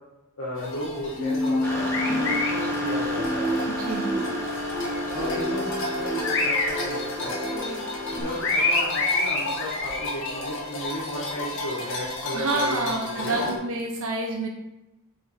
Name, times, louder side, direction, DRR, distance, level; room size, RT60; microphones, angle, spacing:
voice 1, 0.4-3.5 5.1-7.8 8.2-13.5, left 1 dB, 85° left, -6 dB, 1.5 m, -34 dB
sound 1, 0.6-13.6, left 2 dB, 60° left, 1.6 m, -30 dB
sound 2, 1.2-8.2, left 1 dB, 15° right, 1.6 m, -29 dB
sound 3, 1.6-8.7, equal, 10° left, 1.6 m, -36 dB
voice 2, 2.0-2.3 3.8-4.1 12.3-14.5, right 2 dB, 65° right, 1 dB, 0.9 m, -28 dB
7.5 x 4.4 x 4.3 m, 0.96 s
head